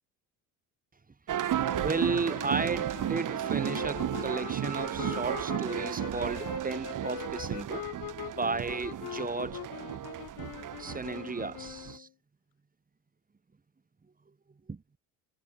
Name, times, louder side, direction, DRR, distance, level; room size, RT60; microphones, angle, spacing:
sound 1, 1.3-12.0, right 11 dB, 45° right, 2.8 m, -34 dB
voice 1, 1.5-7.8 8.3-9.6 10.8-12.1 14.7-14.8, right 4 dB, 20° right, 2.6 m, -34 dB
sound 2, 1.6-12.1, left 17 dB, 60° left, 1.4 m, -42 dB
supercardioid pair, 90°, 41 cm